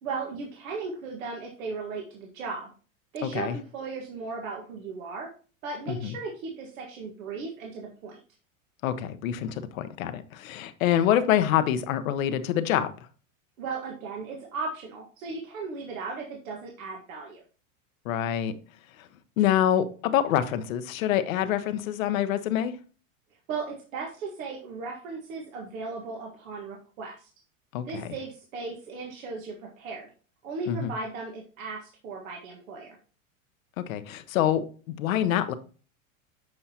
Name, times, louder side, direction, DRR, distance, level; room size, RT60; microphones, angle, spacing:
voice 1, 0.0-2.7 3.1-5.3 5.6-8.2 13.6-17.4 23.5-27.3 27.8-30.1 30.4-32.9, right 4 dB, 75° right, 1.7 m, -36 dB
voice 2, 3.2-3.6 5.9-6.2 8.8-12.9 18.0-18.5 19.0-19.1 19.4-22.8 27.7-28.1 30.7-30.9 33.8-35.5, left 10 dB, 75° left, 0.9 m, -26 dB
7.8 x 5.5 x 2.8 m
hypercardioid pair, 110°, 41 cm